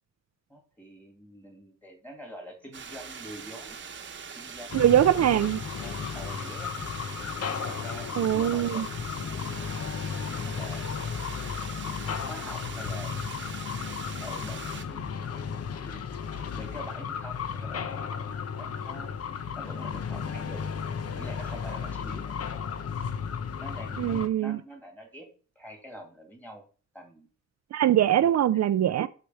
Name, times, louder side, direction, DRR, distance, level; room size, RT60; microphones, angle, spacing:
voice 1, 0.5-3.8 4.4-5.0 5.2-5.4 5.8-6.9 7.6-9.5 10.3-11.0 12.0-13.1 14.2-16.0 16.6-19.1 19.6-20.6 21.1-22.3 23.6-25.3 25.6-26.6 26.9-27.3 28.2-28.4, equal, 5° left, 2.4 m, -46 dB
sound 1, 2.7-14.8, right 6 dB, 40° right, 1.0 m, -42 dB
sound 2, 4.7-24.3, left 6 dB, 55° left, 0.8 m, -34 dB
voice 2, 4.7-5.6 8.2-8.8 24.0-24.6 27.7-29.1, right 11 dB, 60° right, 0.5 m, -22 dB
6.7 x 6.6 x 6.9 m
wide cardioid pair, 180°, 30 cm